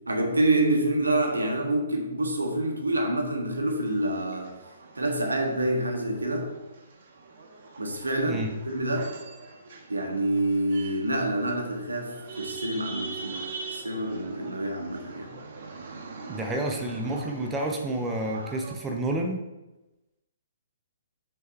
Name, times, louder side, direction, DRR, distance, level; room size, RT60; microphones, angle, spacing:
voice 1, 0.1-4.5 4.9-6.5 7.8-9.1 9.9-15.3, right 1 dB, 75° right, 2 dB, 1.5 m, -27 dB
sound 1, 3.7-18.8, right 4 dB, 50° right, 1.3 m, -43 dB
voice 2, 16.3-19.4, right 1 dB, 10° right, 1 dB, 0.8 m, -29 dB
6.2 x 5.7 x 4.4 m, 1.0 s
figure-of-eight pair, 125°, 0 cm